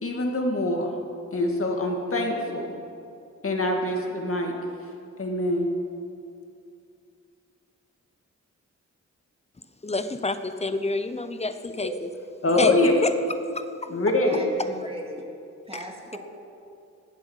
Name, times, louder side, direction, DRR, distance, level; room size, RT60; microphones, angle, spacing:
voice 1, 0.0-0.9 1.3-2.7 3.4-4.5 5.2-5.7 12.4-12.9 13.9-14.3, left 2 dB, 50° left, 1 dB, 2.2 m, -24 dB
voice 2, 9.8-12.1 12.6-12.7 13.0-13.1 13.5-13.9 14.7-14.8 15.7-15.8, left 2 dB, 20° left, 10 dB, 0.7 m, -28 dB
voice 3, 14.2-15.2 15.7-16.2, right 1 dB, 20° right, 0 dB, 2.1 m, -39 dB
19.5 x 7.7 x 7.4 m, 2.5 s
wide cardioid pair, 115°, 29 cm